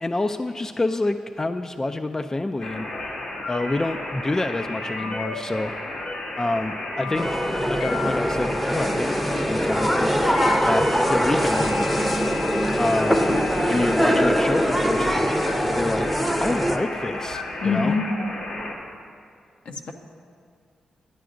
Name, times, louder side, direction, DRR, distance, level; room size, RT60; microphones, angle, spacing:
voice 1, 0.0-2.9 3.5-5.7 6.4-7.3 7.7-9.2 9.5-10.2 10.6-11.9 12.8-13.2 13.7-16.1 16.4-17.9, left 2 dB, 25° left, 8 dB, 0.3 m, -27 dB
sound 1, 2.6-18.7, left 2 dB, 85° left, 1.2 m, -32 dB
sound 2, 7.1-16.8, equal, 5° left, 0.7 m, -23 dB
voice 2, 17.6-18.1 19.7-19.9, left 4 dB, 70° left, 4 dB, 0.7 m, -24 dB
11.0 x 9.2 x 2.5 m, 2.2 s
supercardioid pair, 45°, 2 cm